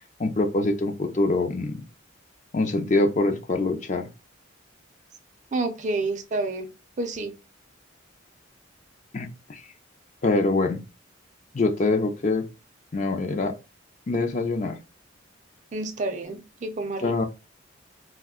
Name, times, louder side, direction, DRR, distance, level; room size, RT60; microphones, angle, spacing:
voice 1, 0.2-1.8 2.5-4.1 9.1-9.6 10.2-10.8 11.5-12.5 12.9-13.5 14.1-14.8 17.0-17.3, left 2 dB, 35° left, 0.4 m, -24 dB
voice 2, 5.5-6.7 7.0-7.3 15.7-17.3, right 2 dB, 35° right, 0.4 m, -29 dB
2.6 x 2.2 x 3.6 m
head